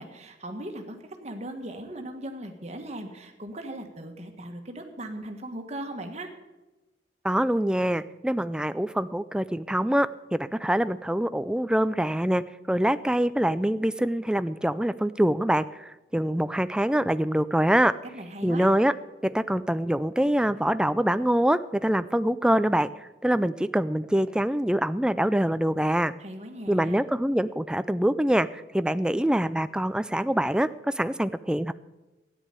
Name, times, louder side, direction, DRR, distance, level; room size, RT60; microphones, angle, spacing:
voice 1, 0.0-6.3 18.1-18.7 26.2-27.0, right 1 dB, 35° right, 5 dB, 1.6 m, -38 dB
voice 2, 7.2-17.9 18.4-18.9 19.2-22.9 23.2-26.1 26.7-31.7, right 1 dB, 5° right, 14 dB, 0.3 m, -25 dB
13.5 x 10.0 x 6.8 m, 1.1 s
head